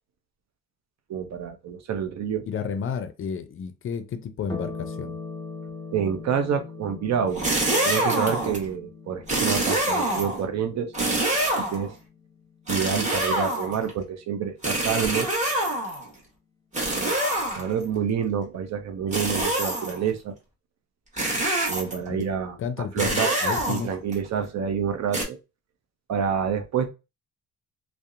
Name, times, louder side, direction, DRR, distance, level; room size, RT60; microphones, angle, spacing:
voice 1, 1.1-2.5 5.9-7.5 7.8-10.9 11.6-11.9 12.7-15.3 17.0-17.2 17.5-20.4 21.7-22.6 22.9-23.4 23.7-25.4 26.1-26.9, right 7 dB, 60° right, 0.6 m, -28 dB
voice 2, 2.5-5.2 22.1-22.2 22.6-23.9, left 6 dB, 45° left, 0.4 m, -32 dB
sound 1, 4.5-13.3, left 4 dB, 10° left, 0.8 m, -41 dB
sound 2, 7.3-8.6 9.3-10.4 10.9-11.9 12.7-13.9 14.6-16.1 16.7-17.8 19.1-20.0 21.2-22.1 23.0-24.1 25.1-25.2, right 1 dB, 25° right, 1.1 m, -25 dB
2.7 x 2.1 x 2.4 m
cardioid pair, 90°, 30 cm